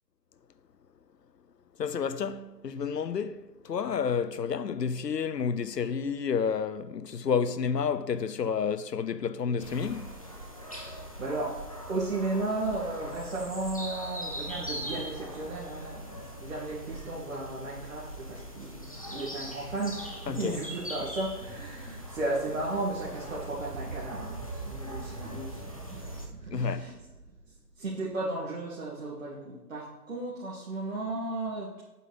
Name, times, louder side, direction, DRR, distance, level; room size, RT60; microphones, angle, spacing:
voice 1, 1.8-10.2 20.3-20.6 26.5-26.9, left 6 dB, 90° left, 0.8 m, -30 dB
sound 1, 9.6-26.3, equal, 20° left, 0.7 m, -41 dB
voice 2, 11.2-11.6 11.9-20.0 20.3-26.1 26.4-26.9 27.8-31.8, right 2 dB, 50° right, 2.2 m, -34 dB
sound 2, 21.2-28.3, right 3 dB, 80° right, 1.9 m, -44 dB
8.3 x 7.2 x 4.1 m
hypercardioid pair, 165°, 48 cm